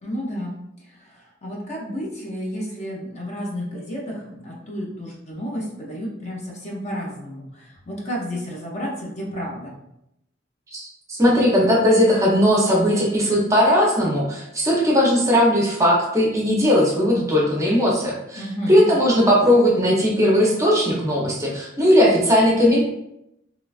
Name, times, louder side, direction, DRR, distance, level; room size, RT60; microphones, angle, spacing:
voice 1, 0.0-0.5 0.8-9.8 18.4-18.9, equal, 35° left, -2 dB, 0.6 m, -31 dB
voice 2, 10.7-18.4 18.7-22.9, equal, 15° right, -3 dB, 0.5 m, -18 dB
3.0 x 2.2 x 2.3 m, 0.81 s
head